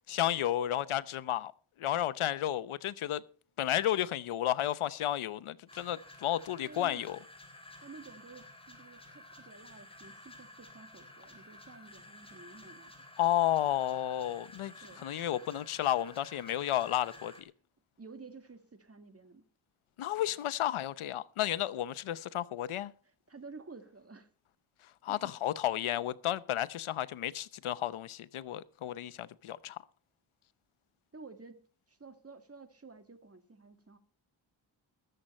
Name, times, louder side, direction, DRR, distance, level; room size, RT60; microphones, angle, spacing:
voice 1, 0.0-1.5 1.8-3.2 3.6-7.2 13.2-17.5 20.0-22.9 25.0-29.8, left 12 dB, 85° left, 0.8 m, -32 dB
sound 1, 5.7-17.4, left 1 dB, 10° left, 3.4 m, -53 dB
voice 2, 6.6-7.0 7.8-12.9 14.8-15.0 18.0-19.4 23.3-24.3 25.1-25.4 31.1-31.6 31.9-34.0, right 4 dB, 30° right, 1.8 m, -51 dB
22.0 x 7.8 x 4.2 m
cardioid pair, 85°, 48 cm